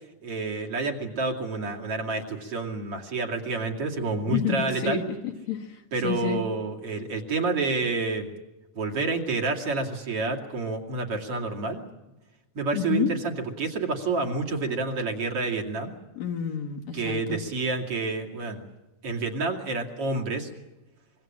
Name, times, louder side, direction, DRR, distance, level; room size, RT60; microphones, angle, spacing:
voice 1, 0.2-5.0 5.9-8.3 8.7-11.8 12.5-15.9 16.9-18.6 19.0-20.5, right 3 dB, 50° right, 0 dB, 3.4 m, -29 dB
voice 2, 4.3-5.7 6.0-6.4 12.7-13.1 16.1-17.4, left 8 dB, 60° left, 0 dB, 3.2 m, -29 dB
26.0 x 23.0 x 7.5 m, 1.1 s
omnidirectional pair, 3.6 m